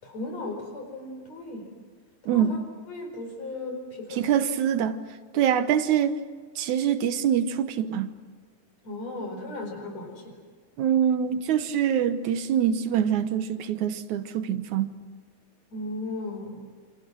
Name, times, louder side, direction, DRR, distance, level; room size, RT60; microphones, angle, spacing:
voice 1, 0.0-1.7 2.3-2.6 2.9-4.3 5.3-5.4 8.8-10.3 15.7-16.6, left 2 dB, 60° left, 6.0 m, -36 dB
voice 2, 2.3-2.6 4.1-5.0 5.3-6.2 6.6-8.1 10.8-14.9, right 9 dB, 75° right, 2.4 m, -24 dB
28.0 x 28.0 x 6.3 m
omnidirectional pair, 3.5 m